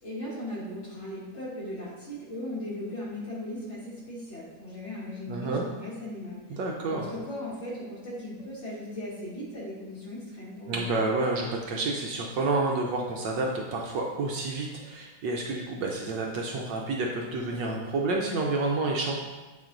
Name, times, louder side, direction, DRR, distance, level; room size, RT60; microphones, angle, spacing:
voice 1, 0.0-6.6 6.8-11.0, left 1 dB, 35° left, -7 dB, 1.8 m, -38 dB
voice 2, 5.3-5.7 6.5-7.1 10.7-19.1, right 3 dB, 70° right, 0 dB, 1.2 m, -29 dB
8.3 x 3.2 x 3.8 m, 1.2 s
omnidirectional pair, 2.2 m